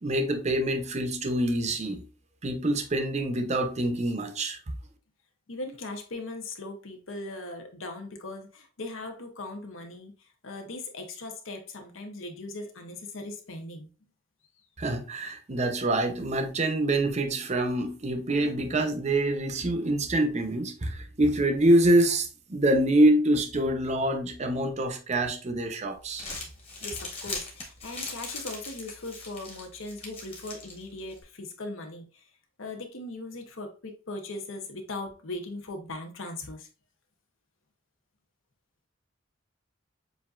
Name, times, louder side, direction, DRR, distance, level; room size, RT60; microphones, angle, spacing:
voice 1, 0.0-2.0 2.4-4.6 14.8-26.2, right 1 dB, 35° right, 0.6 m, -25 dB
voice 2, 5.5-13.9 26.8-32.3 32.6-36.7, left 2 dB, 80° left, 1.0 m, -39 dB
Crumpling crinkling, 26.0-31.2, left 3 dB, 30° left, 1.4 m, -40 dB
7.3 x 2.7 x 2.4 m
head